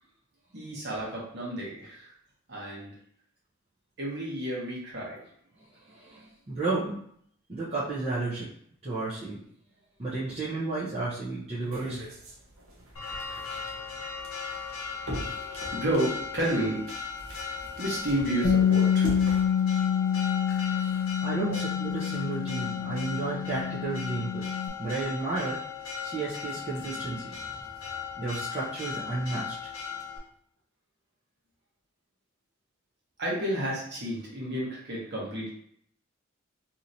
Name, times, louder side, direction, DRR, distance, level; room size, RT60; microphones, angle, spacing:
voice 1, 0.5-2.1 2.5-2.9 4.0-5.2 15.4-16.8 17.7-19.2 21.4-21.6 33.2-35.5, right 1 dB, 50° right, -5 dB, 1.1 m, -31 dB
voice 2, 5.9-7.0 7.5-8.5 8.8-9.4 10.0-12.0 20.7-25.6 26.0-27.6 28.2-29.7, right 3 dB, 30° right, -9 dB, 0.6 m, -33 dB
sound 1, 11.6-19.5, equal, 75° right, 0.8 m, -41 dB
Church bell, 13.0-30.2, left 6 dB, 85° left, 0.7 m, -38 dB
Bass guitar, 18.4-24.7, left 8 dB, 55° left, 0.4 m, -27 dB
3.0 x 2.8 x 2.6 m, 0.66 s
head